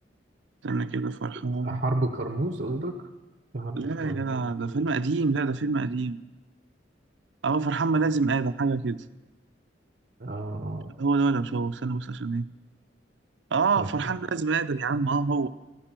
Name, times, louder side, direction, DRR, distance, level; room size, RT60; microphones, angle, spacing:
voice 1, 0.6-1.8 3.8-6.2 7.4-9.0 11.0-12.4 13.5-15.5, right 4 dB, 70° right, 14 dB, 0.5 m, -26 dB
voice 2, 1.6-3.0 3.5-4.9 10.2-10.9 13.8-14.1, right 2 dB, 50° right, 7 dB, 0.9 m, -31 dB
13.5 x 11.0 x 7.5 m, 1.1 s
head